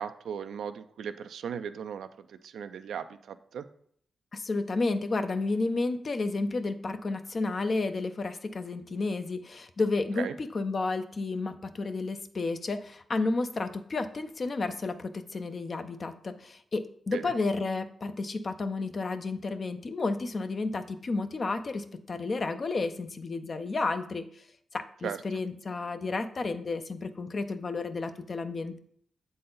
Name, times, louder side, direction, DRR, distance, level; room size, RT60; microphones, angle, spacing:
voice 1, 0.0-3.7 10.2-10.3 17.1-17.3 25.0-25.2, right 7 dB, 80° right, 10 dB, 0.4 m, -37 dB
voice 2, 4.3-24.4 24.7-28.8, left 3 dB, 50° left, 9 dB, 0.6 m, -31 dB
7.6 x 4.0 x 3.9 m, 0.63 s
supercardioid pair, 50°, 0 cm